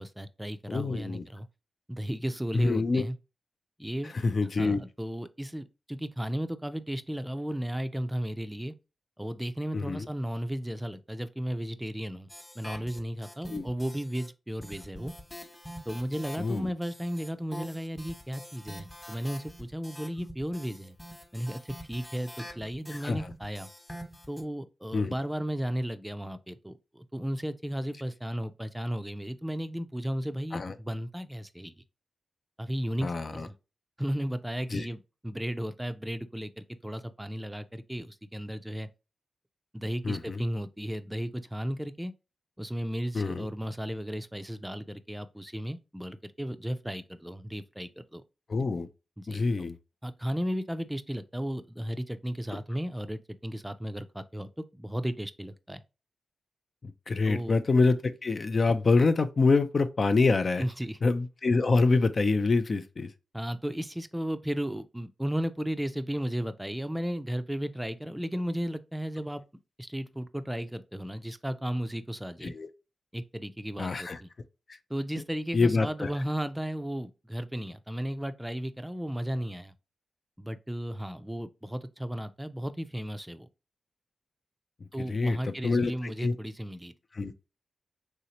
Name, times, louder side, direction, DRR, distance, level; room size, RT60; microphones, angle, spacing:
voice 1, 0.0-1.5 1.9-3.2 3.8-4.1 4.4-8.7 9.2-12.3 12.6-15.1 15.9-21.0 21.3-23.7 24.3-31.7 32.6-33.5 34.0-38.9 39.7-42.1 42.6-48.2 49.2-49.7 50.0-55.8 57.3-57.5 60.6-61.0 63.3-69.4 69.8-72.5 73.1-74.3 74.9-79.7 80.4-83.5 84.9-86.9, equal, 10° right, 0.4 m, -34 dB
voice 2, 0.7-1.2 2.5-3.0 4.2-4.8 9.7-10.1 13.5-13.6 16.4-16.7 23.0-23.2 24.9-25.1 30.5-30.7 33.0-33.5 34.7-34.9 40.0-40.4 43.1-43.5 48.5-48.9 49.3-49.8 56.8-60.6 61.0-63.1 72.4-72.7 73.8-74.2 75.5-76.1 85.1-85.4 85.6-86.3 87.2-87.3, left 3 dB, 55° left, 0.4 m, -26 dB
sound 1, 12.3-14.3 14.6-24.4, equal, 15° left, 1.1 m, -45 dB
3.2 x 2.8 x 2.8 m
cardioid pair, 45°, 0 cm